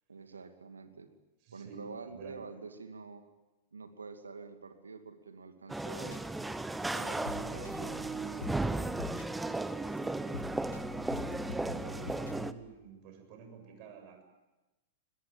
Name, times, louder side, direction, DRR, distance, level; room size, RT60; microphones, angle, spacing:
voice 1, 0.1-1.1 1.5-3.2 3.7-6.2 6.9-8.0, right 4 dB, 85° right, 7 dB, 2.4 m, -47 dB
voice 2, 1.4-2.4 10.0-10.6 11.1-14.2, right 6 dB, 45° right, 5 dB, 7.6 m, -51 dB
sound 1, 5.7-12.5, right 2 dB, 5° right, 1.1 m, -35 dB
sound 2, 6.1-6.3 6.8-9.6 9.9-12.5, left 5 dB, 80° left, 1.9 m, -45 dB
23.5 x 21.5 x 8.9 m, 1.0 s
hypercardioid pair, 105°, 0 cm